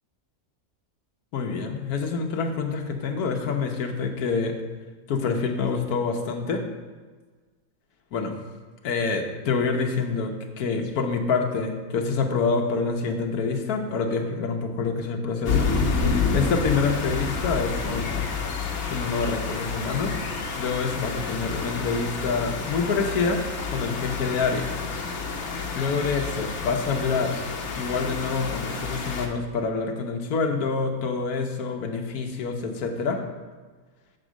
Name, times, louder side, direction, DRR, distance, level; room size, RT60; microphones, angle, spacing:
voice 1, 1.3-4.6 5.1-6.6 8.1-8.3 8.8-16.0 16.3-18.3 18.9-20.2 20.6-23.4 23.7-24.7 25.7-27.4 27.7-33.2, left 4 dB, 80° left, 4 dB, 1.3 m, -27 dB
sound 1, 15.4-29.3, left 4 dB, 55° left, 1.1 m, -29 dB
7.8 x 4.3 x 6.2 m, 1.4 s
omnidirectional pair, 1.6 m